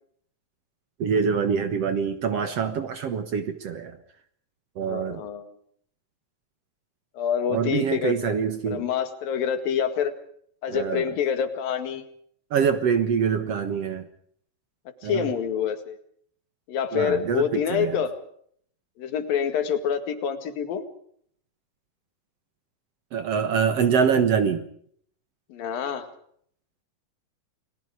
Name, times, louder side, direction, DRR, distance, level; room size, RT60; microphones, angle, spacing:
voice 1, 1.0-4.0 4.8-5.2 7.5-8.8 10.7-11.1 12.5-14.1 15.0-15.3 16.9-18.0 23.1-24.6, right 6 dB, 55° right, 9 dB, 2.0 m, -25 dB
voice 2, 4.8-5.5 7.2-8.4 8.7-10.1 10.6-12.0 15.0-16.0 16.7-18.1 19.0-20.8 25.5-26.1, left 8 dB, 80° left, 8 dB, 3.7 m, -27 dB
30.0 x 20.0 x 4.9 m, 0.63 s
omnidirectional pair, 4.0 m